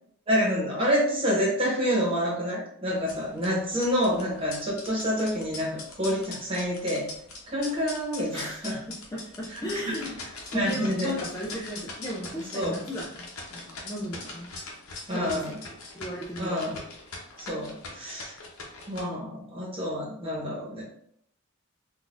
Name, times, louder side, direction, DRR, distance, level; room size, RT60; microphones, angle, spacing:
voice 1, 0.3-5.7 6.0-7.0 7.5-8.8 9.5-9.7 10.5-11.1 12.5-12.8 15.1-15.6 16.4-16.8 17.4-18.4 18.9-20.8, equal, 25° right, -5 dB, 1.1 m, -28 dB
sound 1, 3.0-19.0, left 3 dB, 80° left, 0.8 m, -42 dB
voice 2, 8.3-8.7 9.1-14.5 15.1-15.4 15.9-16.6, equal, 15° left, -3 dB, 0.4 m, -36 dB
3.8 x 2.4 x 2.4 m, 0.69 s
head